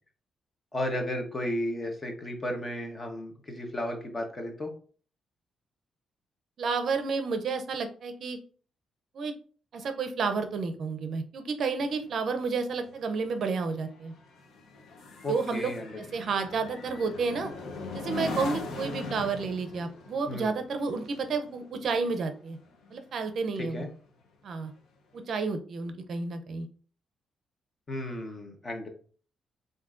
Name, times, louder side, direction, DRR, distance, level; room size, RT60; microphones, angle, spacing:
voice 1, 0.7-4.7 15.2-16.0 16.2-16.3 20.3-20.5 23.6-23.9 27.9-28.9, left 1 dB, 25° left, 3 dB, 1.0 m, -34 dB
voice 2, 6.6-8.4 9.1-9.3 9.7-14.1 15.3-15.7 16.0-17.5 17.9-22.6 22.9-23.9 24.4-24.7 25.1-26.7, right 4 dB, 55° right, 8 dB, 0.5 m, -31 dB
sound 1, 11.8-23.5 23.9-24.2, left 3 dB, 85° left, 0.7 m, -41 dB
7.2 x 2.6 x 2.5 m, 0.43 s
cardioid pair, 135°, 0 cm